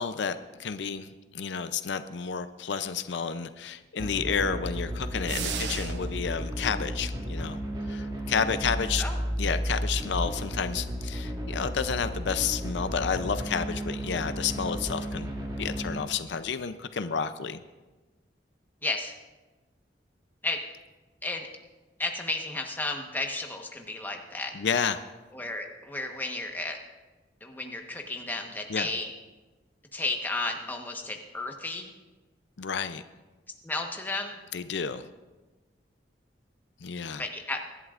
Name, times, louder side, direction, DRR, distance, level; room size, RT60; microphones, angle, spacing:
voice 1, 0.0-7.6 7.9-9.0 9.4-15.3 15.6-17.6 24.5-25.0 28.7-28.9 32.6-33.0 34.5-35.0 36.8-37.3, left 6 dB, 80° left, 11 dB, 0.5 m, -31 dB
sound 1, 4.0-16.0, equal, 25° right, 1.7 m, -33 dB
sound 2, 5.3-6.3, right 8 dB, 80° right, 0.8 m, -35 dB
voice 2, 18.8-19.1 20.4-20.6 21.2-21.5 22.0-24.5 25.3-26.8 27.4-29.1 29.9-31.9 33.6-34.4 37.2-37.6, left 2 dB, 10° left, 2 dB, 1.2 m, -33 dB
23.5 x 11.0 x 2.5 m, 1.2 s
head